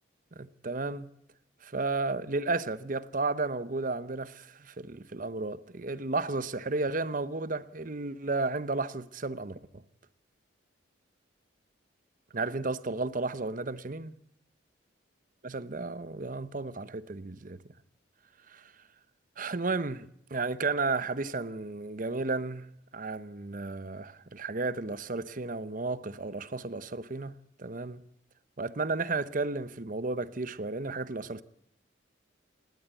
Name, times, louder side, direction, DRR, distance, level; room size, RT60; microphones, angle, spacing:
voice 1, 0.4-1.1 1.6-9.8 12.3-14.1 15.4-17.6 18.5-18.6 19.4-22.7 22.9-28.0 28.6-31.4, right 3 dB, 45° right, 0.8 m, -33 dB
19.0 x 18.0 x 8.3 m
head